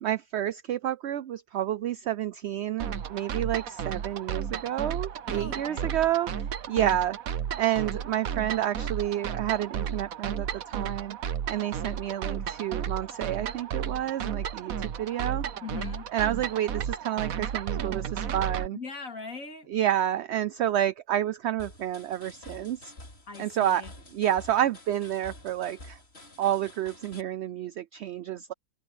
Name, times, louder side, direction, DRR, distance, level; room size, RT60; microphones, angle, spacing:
voice 1, 0.0-7.2 7.6-11.2 11.5-15.4 16.1-18.8 19.7-22.9 23.4-23.8 24.1-26.0 26.4-28.5, right 11 dB, 60° right, 0.8 m, -29 dB
sound 1, 2.8-18.7, right 8 dB, 75° right, 1.4 m, -33 dB
voice 2, 5.3-5.9 6.7-7.0 15.6-16.1 18.7-19.7 23.3-23.9, left 4 dB, 70° left, 3.0 m, -40 dB
sound 2, 21.6-27.2, left 2 dB, 45° left, 3.5 m, -49 dB
omnidirectional pair, 1.5 m